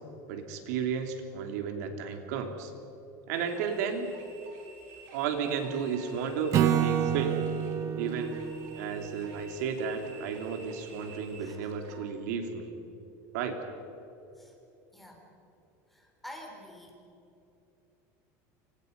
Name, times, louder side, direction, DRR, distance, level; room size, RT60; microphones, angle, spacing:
voice 1, 0.3-2.7 3.3-4.1 5.1-7.4 8.0-8.3 8.8-12.7 13.3-13.6, right 6 dB, 80° right, 5 dB, 3.1 m, -33 dB
sound 1, 3.3-12.0, right 4 dB, 55° right, 6.0 m, -52 dB
Acoustic guitar / Strum, 6.5-9.8, right 10 dB, 35° right, 1.2 m, -29 dB
voice 2, 14.9-15.2 15.9-17.0, equal, ahead, 0 dB, 4.0 m, -47 dB
28.5 x 25.5 x 5.4 m, 3.0 s
cardioid pair, 165°, 9 cm